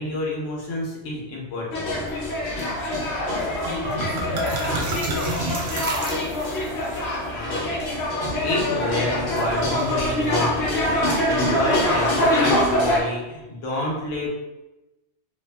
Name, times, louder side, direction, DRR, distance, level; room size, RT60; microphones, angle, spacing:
voice 1, 0.0-2.0 7.3-7.7 8.4-14.3, left 2 dB, 80° left, -3 dB, 1.1 m, -29 dB
sound 1, 1.7-13.0, left 1 dB, 55° left, 0.7 m, -24 dB
voice 2, 3.1-5.6, left 1 dB, 35° right, -10 dB, 0.5 m, -33 dB
sound 2, 3.3-3.4 3.6-6.7, right 2 dB, 65° right, 0.8 m, -30 dB
2.6 x 2.5 x 2.2 m, 1.0 s
omnidirectional pair, 1.3 m